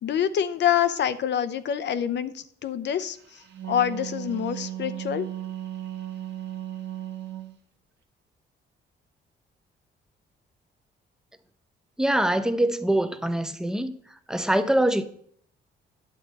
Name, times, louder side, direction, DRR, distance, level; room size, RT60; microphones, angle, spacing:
voice 1, 0.0-3.4 3.7-5.3, left 9 dB, 65° left, 0.7 m, -26 dB
Wind instrument woodwind instrument, 3.3-7.5, right 12 dB, 60° right, 1.3 m, -36 dB
voice 2, 12.0-13.9 14.3-15.0, right 1 dB, 5° right, 0.7 m, -23 dB
9.8 x 7.6 x 4.1 m
cardioid pair, 90°, 20 cm